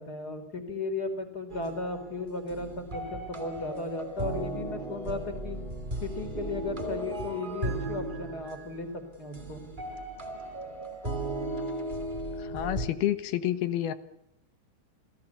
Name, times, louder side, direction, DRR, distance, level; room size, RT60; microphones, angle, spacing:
voice 1, 0.0-5.6 6.0-9.6, left 2 dB, 25° left, 8 dB, 4.3 m, -35 dB
sound 1, 1.5-12.9, right 1 dB, 15° right, 2.3 m, -36 dB
voice 2, 12.4-13.9, left 12 dB, 70° left, 12 dB, 3.1 m, -29 dB
28.5 x 18.5 x 8.4 m, 0.77 s
omnidirectional pair, 4.8 m